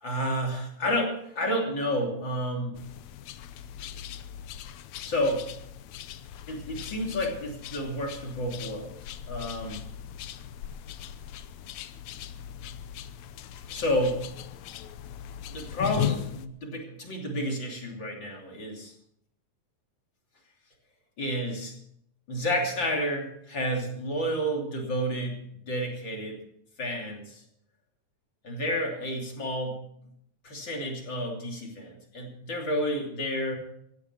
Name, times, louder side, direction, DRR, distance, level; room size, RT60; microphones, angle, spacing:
voice 1, 0.0-2.8 5.0-5.5 6.5-9.0 9.3-9.8 13.6-14.3 15.5-18.9 21.2-21.7 22.3-25.4 25.7-26.4 26.8-27.4 28.4-29.8 30.4-33.6, equal, 35° left, 1 dB, 3.5 m, -30 dB
sound 1, 2.7-16.5, left 11 dB, 75° left, 1.9 m, -38 dB
16.0 x 16.0 x 4.5 m, 0.71 s
omnidirectional pair, 3.6 m